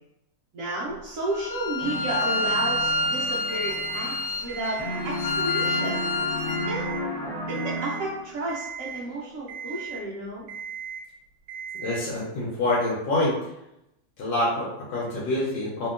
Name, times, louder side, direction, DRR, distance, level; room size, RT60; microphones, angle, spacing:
voice 1, 0.5-6.0 6.7-7.0 7.5-10.4, right 2 dB, 70° right, -5 dB, 0.8 m, -32 dB
Bowed string instrument, 1.3-6.7, left 2 dB, 60° left, 1.0 m, -28 dB
sound 1, 1.8-4.5 4.8-8.4, left 1 dB, 15° left, 1.4 m, -33 dB
Alarm, 3.5-4.0 4.5-5.0 5.4-6.0 6.5-7.0 7.5-8.0 8.5-9.0 9.5-10.0 10.5-11.0 11.5-12.0, right 7 dB, 85° right, 1.3 m, -37 dB
voice 2, 11.7-13.3 14.2-15.9, left 1 dB, 85° left, -5 dB, 1.3 m, -26 dB
2.8 x 2.7 x 2.4 m, 0.84 s
omnidirectional pair, 1.9 m